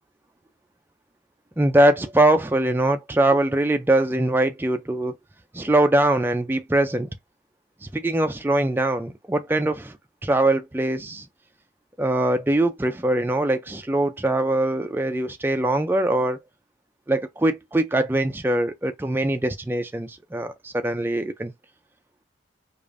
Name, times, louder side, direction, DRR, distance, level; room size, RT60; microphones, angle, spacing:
voice 1, 1.6-5.1 5.5-7.1 7.8-10.0 10.2-11.3 12.0-16.4 17.1-21.5, right 1 dB, 10° right, 0.3 m, -22 dB
4.9 x 2.5 x 2.5 m
head